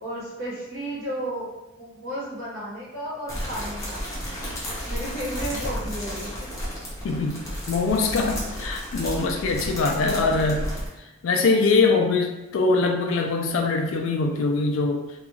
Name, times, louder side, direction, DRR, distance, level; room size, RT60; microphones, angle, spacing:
voice 1, 0.0-1.5 1.8-4.0 4.4-4.5 4.9-6.5 10.0-10.4, equal, 75° right, -10 dB, 1.0 m, -33 dB
sound 1, 3.3-10.9, equal, 15° left, 0.6 m, -32 dB
voice 2, 7.0-7.4 7.7-10.7 11.0-15.0, left 3 dB, 70° left, 4 dB, 0.3 m, -23 dB
2.3 x 2.3 x 3.0 m, 0.97 s
head